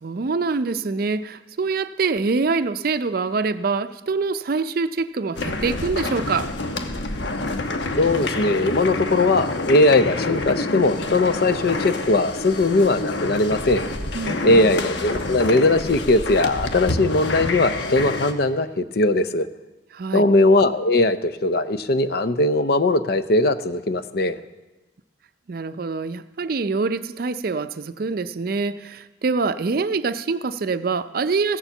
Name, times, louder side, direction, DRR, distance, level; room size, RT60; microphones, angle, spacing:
voice 1, 0.0-6.5 14.1-14.7 19.9-20.2 25.5-31.6, right 4 dB, 50° right, 13 dB, 0.5 m, -25 dB
sound 1, 5.4-18.3, left 2 dB, 75° left, 1.0 m, -27 dB
voice 2, 8.0-13.8 14.4-19.5 20.1-24.4, left 2 dB, 55° left, 12 dB, 0.6 m, -19 dB
15.5 x 7.1 x 7.0 m, 1.1 s
head